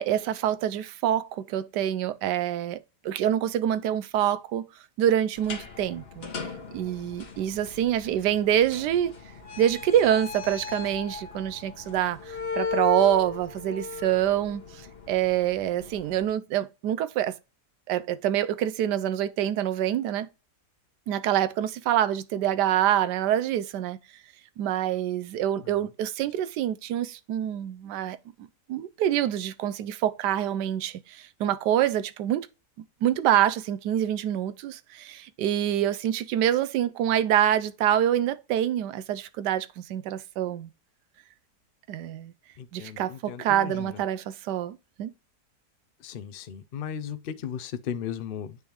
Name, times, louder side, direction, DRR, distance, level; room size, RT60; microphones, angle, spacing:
voice 1, 0.0-2.8 3.0-4.7 5.0-6.3 6.7-9.1 9.6-17.3 17.9-20.3 21.1-24.0 24.6-28.2 28.7-32.5 33.0-40.7 41.9-42.3 42.7-45.1, right 11 dB, 90° right, 1.2 m, -26 dB
sound 1, 5.4-16.3, left 5 dB, 40° left, 1.4 m, -37 dB
voice 2, 42.6-44.0 46.0-48.6, left 8 dB, 85° left, 0.4 m, -36 dB
9.6 x 3.5 x 3.0 m
omnidirectional pair, 1.8 m